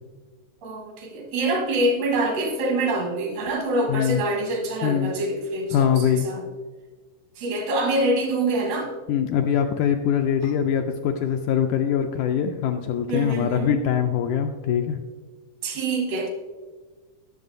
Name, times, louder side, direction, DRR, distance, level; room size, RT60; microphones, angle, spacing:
voice 1, 0.6-6.5 7.4-8.9 13.1-13.8 15.6-16.3, right 1 dB, 80° right, 1 dB, 3.1 m, -25 dB
voice 2, 3.9-4.2 4.8-5.1 5.7-6.3 9.1-15.0, left 8 dB, 80° left, 5 dB, 1.8 m, -23 dB
17.5 x 6.8 x 2.6 m, 1.4 s
omnidirectional pair, 3.9 m